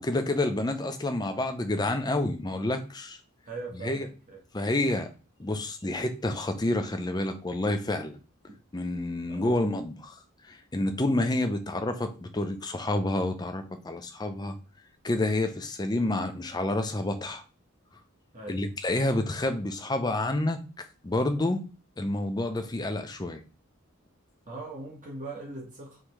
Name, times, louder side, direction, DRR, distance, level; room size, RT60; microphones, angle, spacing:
voice 1, 0.0-3.2 3.8-4.1 4.5-5.1 5.4-8.2 8.7-10.1 10.5-14.5 15.0-17.4 18.5-20.6 21.0-21.7 22.0-23.4, left 1 dB, 20° left, 0.5 m, -29 dB
voice 2, 3.4-4.4 8.5-8.6 9.3-9.5 18.3-18.6 24.5-26.0, right 3 dB, 40° right, 1.1 m, -40 dB
5.0 x 3.2 x 3.1 m
head